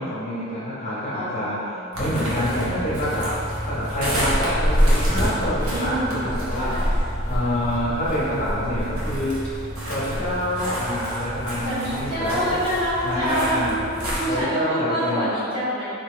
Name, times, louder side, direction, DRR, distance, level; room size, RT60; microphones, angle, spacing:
voice 1, 0.0-3.4 3.6-6.9 7.2-9.4 9.9-12.6 13.0-13.8 14.3-15.3, equal, 30° left, -8 dB, 0.6 m, -27 dB
voice 2, 1.1-2.9 5.6-7.0 11.6-15.8, equal, 25° right, -11 dB, 1.1 m, -27 dB
sound 1, 1.9-14.4, equal, 75° right, 1.0 m, -27 dB
3.5 x 2.6 x 3.6 m, 2.6 s
head